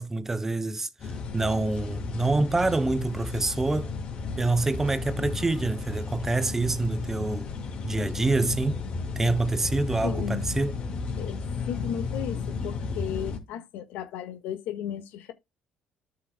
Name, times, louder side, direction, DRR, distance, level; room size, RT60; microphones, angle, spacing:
voice 1, 0.0-3.9 4.4-7.5 7.8-8.8 9.2-10.8, right 2 dB, 15° right, 0.5 m, -26 dB
sound 1, 1.0-13.4, left 4 dB, 40° left, 2.5 m, -33 dB
voice 2, 10.0-10.4 11.2-11.4 11.7-15.3, left 9 dB, 85° left, 1.7 m, -35 dB
13.5 x 5.7 x 2.2 m
cardioid pair, 145°, 3 cm